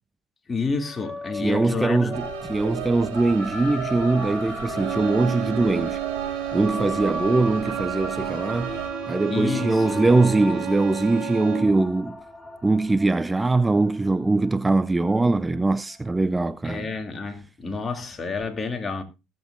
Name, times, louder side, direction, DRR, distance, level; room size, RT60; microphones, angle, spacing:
voice 1, 0.5-2.2 9.3-10.1 16.6-19.0, left 4 dB, 25° left, 2.6 m, -29 dB
sound 1, 0.8-15.5, left 1 dB, 5° left, 2.3 m, -37 dB
voice 2, 1.3-6.0 6.5-8.8 9.1-12.2 12.6-16.9, right 3 dB, 15° right, 0.5 m, -22 dB
sound 2, 2.1-8.9, right 9 dB, 80° right, 3.3 m, -35 dB
sound 3, 4.7-11.9, right 10 dB, 65° right, 4.4 m, -32 dB
19.5 x 8.0 x 2.5 m
hypercardioid pair, 70°, 0 cm